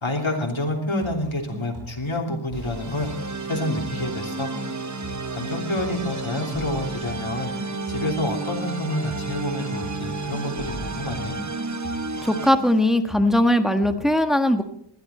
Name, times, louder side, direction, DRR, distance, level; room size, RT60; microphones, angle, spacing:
voice 1, 0.0-3.1 3.5-4.5 5.3-7.5 7.9-11.4, left 1 dB, 70° left, 0 dB, 3.3 m, -28 dB
sound 1, 1.0-4.2 4.5-8.3 8.6-12.3 12.6-14.0, equal, 50° right, 6.3 m, -40 dB
sound 2, 2.5-12.9, left 4 dB, 55° left, 6.0 m, -42 dB
sound 3, 2.6-12.5, right 4 dB, 35° right, 0.9 m, -32 dB
voice 2, 12.2-14.6, left 1 dB, ahead, 6 dB, 1.5 m, -19 dB
20.0 x 14.0 x 4.3 m, 0.68 s
wide cardioid pair, 40°, 49 cm